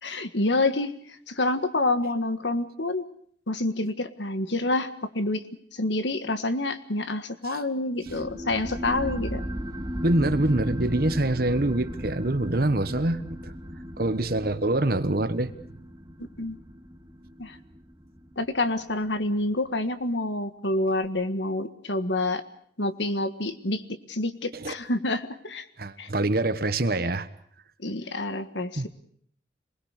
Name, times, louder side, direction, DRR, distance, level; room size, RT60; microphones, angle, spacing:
voice 1, 0.0-0.9 1.3-3.0 3.5-5.4 5.7-9.4 16.4-16.6 17.4-17.6 18.4-22.4 22.8-23.8 24.1-25.6 26.0-26.1 27.8-28.9, left 2 dB, 70° left, 10 dB, 1.7 m, -27 dB
sound 1, 8.1-19.2, equal, 20° right, 1.5 m, -36 dB
voice 2, 10.0-13.5 14.0-15.5 24.5-24.7 25.8-27.3 28.7-28.9, right 2 dB, 50° right, 12 dB, 1.3 m, -25 dB
26.5 x 20.5 x 6.6 m, 0.62 s
head